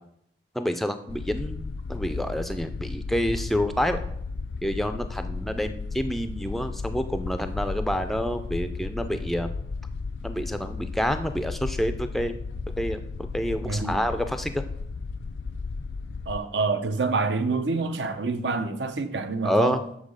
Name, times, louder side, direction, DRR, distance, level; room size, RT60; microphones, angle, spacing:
voice 1, 0.6-4.0 4.6-9.5 10.2-12.3 12.8-13.0 13.3-14.6 19.4-19.8, equal, ahead, 0.3 m, -28 dB
sound 1, 1.1-16.4, left 4 dB, 80° left, 0.4 m, -34 dB
voice 2, 13.6-14.0 16.3-19.8, right 3 dB, 85° right, 0.7 m, -27 dB
7.3 x 4.0 x 6.3 m
head